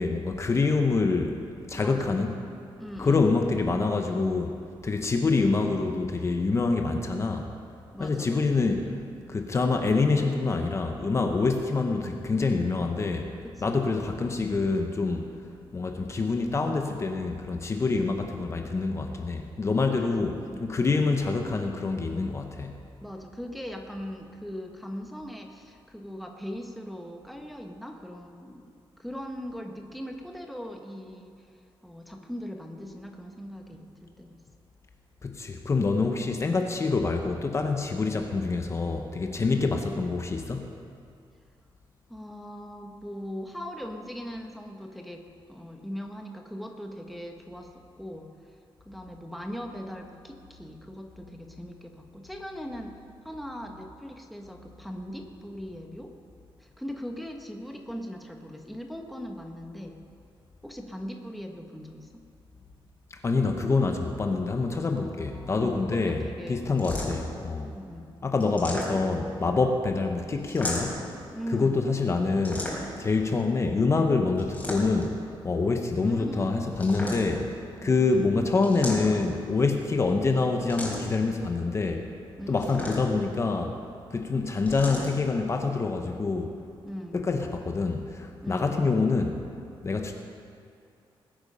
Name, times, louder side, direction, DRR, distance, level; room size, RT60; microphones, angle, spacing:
voice 1, 0.0-1.4 1.7-2.3 3.0-4.6 4.8-7.5 8.0-8.8 9.3-13.3 13.6-15.2 15.7-22.8 35.2-40.7 63.1-66.2 66.5-67.7 68.2-71.0 71.5-72.7 73.0-75.1 75.4-82.0 82.5-83.8 84.1-86.5 87.1-89.4 89.8-90.1, left 3 dB, 30° left, 4 dB, 1.0 m, -26 dB
voice 2, 1.7-2.2 2.8-3.3 7.9-8.6 13.6-14.0 19.9-20.2 20.4-20.6 23.0-31.5 31.8-34.4 39.5-39.6 42.1-48.3 48.8-53.0 53.2-56.1 56.6-60.0 60.6-62.2 64.9-67.0 67.7-68.1 71.3-71.9 75.9-76.6 77.8-78.6 82.4-82.9 86.8-87.2 88.4-88.8, equal, ahead, 2 dB, 1.1 m, -40 dB
sound 1, 66.8-67.4 68.4-69.3 70.5-71.1 72.4-73.1 74.4-75.2 76.8-77.5 78.6-79.4 80.7-81.2 82.6-83.3 84.7-85.1, left 1 dB, 15° left, 3.7 m, -35 dB
20.5 x 9.0 x 5.5 m, 2.5 s
wide cardioid pair, 145°, 9 cm